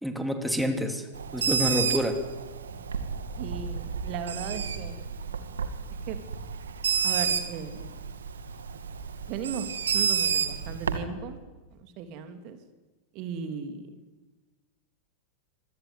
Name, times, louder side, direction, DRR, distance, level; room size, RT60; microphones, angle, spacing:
voice 1, 0.0-2.2, equal, ahead, 5 dB, 3.0 m, -28 dB
Bird, 1.1-11.0, right 6 dB, 70° right, 2.3 m, -30 dB
voice 2, 3.4-5.2 6.1-6.2 7.0-7.9 9.3-11.4 11.7-12.6 13.1-13.9, right 6 dB, 40° right, 7 dB, 3.0 m, -37 dB
25.5 x 22.5 x 9.7 m, 1.2 s
figure-of-eight pair, 90°, 0 cm